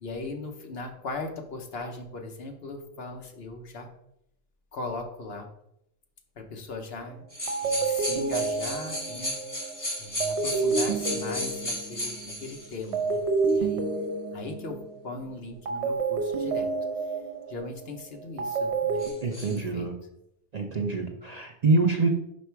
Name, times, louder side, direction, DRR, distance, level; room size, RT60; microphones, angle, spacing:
voice 1, 0.0-3.9 4.7-5.5 6.4-7.2 7.6-9.4 10.0-13.2 13.5-13.9 14.3-16.7 17.5-19.9, left 3 dB, 60° left, 4 dB, 1.1 m, -39 dB
sound 1, 7.0-7.2 7.5-12.4 12.9-15.1 15.7-19.1, right 4 dB, 65° right, 1.1 m, -29 dB
sound 2, 7.3-12.7 13.5-13.6 19.0-19.6, left 1 dB, 15° left, 1.8 m, -34 dB
voice 2, 19.2-19.9 20.5-22.1, right 3 dB, 45° right, 2 dB, 0.6 m, -25 dB
5.5 x 5.2 x 4.6 m, 0.78 s
omnidirectional pair, 1.2 m